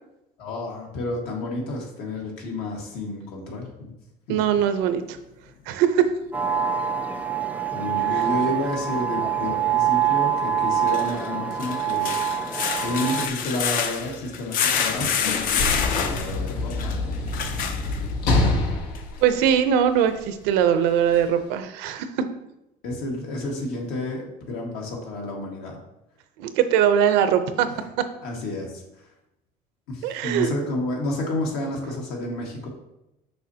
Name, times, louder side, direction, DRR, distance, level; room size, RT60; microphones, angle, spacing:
voice 1, 0.4-3.9 4.3-4.4 7.7-12.2 12.8-17.1 22.8-25.8 28.2-29.1 29.9-32.7, left 1 dB, 75° left, -1 dB, 1.8 m, -30 dB
voice 2, 4.3-5.2 5.7-6.1 19.2-22.1 26.4-27.7 30.0-30.5, right 9 dB, 85° right, 9 dB, 0.6 m, -21 dB
sound 1, 6.3-13.3, right 8 dB, 10° right, 0.4 m, -25 dB
sound 2, 8.2-8.3 10.7-18.4 18.9-19.0 19.5-19.6, left 7 dB, 55° left, 0.6 m, -27 dB
Sliding door / Slam, 14.8-20.2 21.1-21.2, left 2 dB, 90° left, 1.2 m, -26 dB
6.3 x 5.8 x 2.8 m, 0.89 s
cardioid pair, 140°, 17 cm